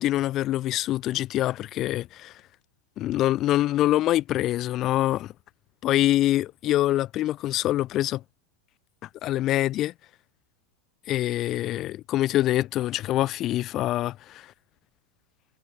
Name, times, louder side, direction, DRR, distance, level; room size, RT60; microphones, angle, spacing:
voice 1, 0.0-2.3 3.0-5.3 5.8-8.2 9.2-9.9 11.1-14.4, left 14 dB, 35° left, 2.3 m, -25 dB
figure-of-eight pair, 90°, 0 cm